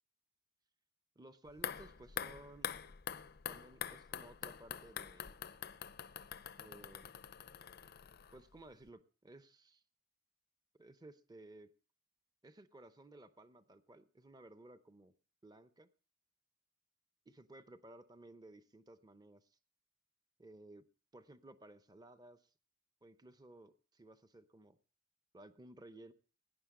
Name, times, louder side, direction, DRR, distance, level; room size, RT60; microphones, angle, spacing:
voice 1, 1.2-2.7 3.5-5.4 6.6-7.1 8.3-9.8 10.8-11.7 12.4-15.1 15.4-15.9 17.3-19.6 20.4-20.9 21.1-22.5 23.0-24.8 25.3-26.1, right 2 dB, 20° right, 11 dB, 0.7 m, -57 dB
sound 1, 1.5-8.6 8.9-9.0, left 8 dB, 50° left, 0.5 m, -45 dB
17.5 x 10.0 x 3.7 m, 0.38 s
head